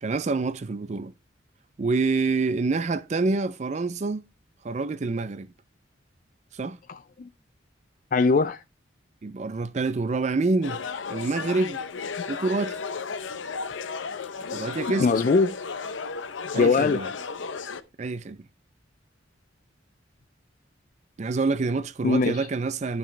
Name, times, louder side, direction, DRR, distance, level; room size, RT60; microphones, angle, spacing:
voice 1, 0.0-1.1 1.8-4.2 4.6-5.5 6.5-6.8 9.2-10.8 11.1-11.8 12.3-12.8 14.5-15.1 16.5-17.1 18.0-18.4 21.2-23.0, right 3 dB, 35° right, 0.4 m, -27 dB
voice 2, 6.9-7.3 8.1-8.6 15.0-15.5 16.5-17.0 22.0-22.5, left 4 dB, 45° left, 0.4 m, -21 dB
sound 1, 10.6-17.8, left 5 dB, 85° left, 0.7 m, -34 dB
11.0 x 6.0 x 3.2 m
head